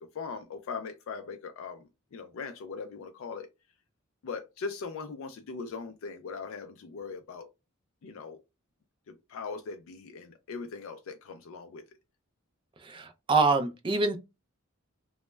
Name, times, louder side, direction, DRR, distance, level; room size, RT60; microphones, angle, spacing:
voice 1, 0.0-1.8 2.1-3.5 4.2-7.5 8.0-8.4 9.1-11.8, left 5 dB, 65° left, 0.3 m, -40 dB
voice 2, 12.8-14.2, right 3 dB, 25° right, 0.3 m, -25 dB
2.1 x 2.0 x 3.2 m
head